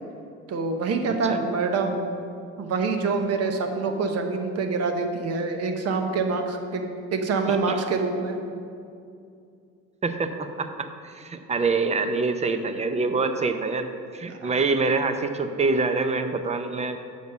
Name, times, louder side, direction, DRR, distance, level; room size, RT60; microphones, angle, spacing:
voice 1, 0.5-2.1 2.6-6.8 7.1-8.4 14.3-14.5, right 4 dB, 55° right, 5 dB, 1.0 m, -26 dB
voice 2, 1.1-1.4 7.5-7.8 10.0-17.0, right 3 dB, 20° right, 8 dB, 0.6 m, -26 dB
6.6 x 5.2 x 6.6 m, 2.5 s
cardioid pair, 100°, 30 cm